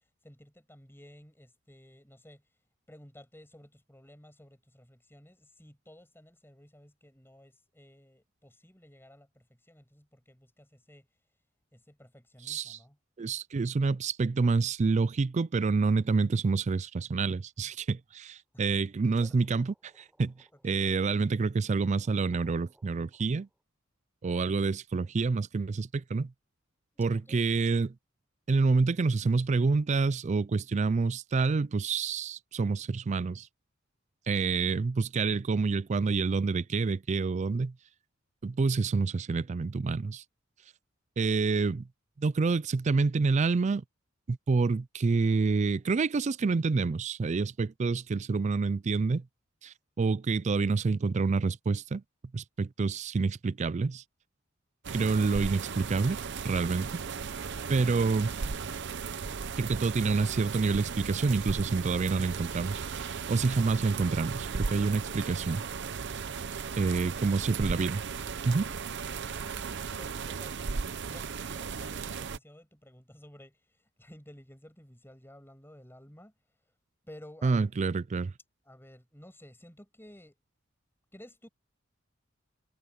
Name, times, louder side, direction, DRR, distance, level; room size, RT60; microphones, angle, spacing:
voice 1, 0.0-2.5 2.9-11.1 11.7-13.0 18.5-18.8 19.2-19.4 20.5-21.0 24.4-24.5 26.9-27.7 67.1-67.2 69.3-70.6 70.8-76.3 76.7-76.8 77.0-77.8 78.6-80.4 81.1-81.5, left 1 dB, 10° left, 7.9 m, -54 dB
voice 2, 12.5-12.8 13.2-19.7 20.0-20.3 20.6-23.5 24.2-26.3 27.0-27.9 28.5-33.5 34.3-37.7 38.4-40.2 41.2-41.9 42.2-43.8 44.3-49.2 49.6-52.0 52.3-54.0 54.9-56.2 56.4-57.0 57.7-58.4 59.6-65.6 66.8-68.0 68.4-68.7 77.4-78.3, right 4 dB, 35° right, 0.4 m, -28 dB
sound 1, 19.1-23.6, right 1 dB, 5° right, 5.4 m, -67 dB
sound 2, 54.8-72.4, right 5 dB, 60° right, 0.7 m, -36 dB
head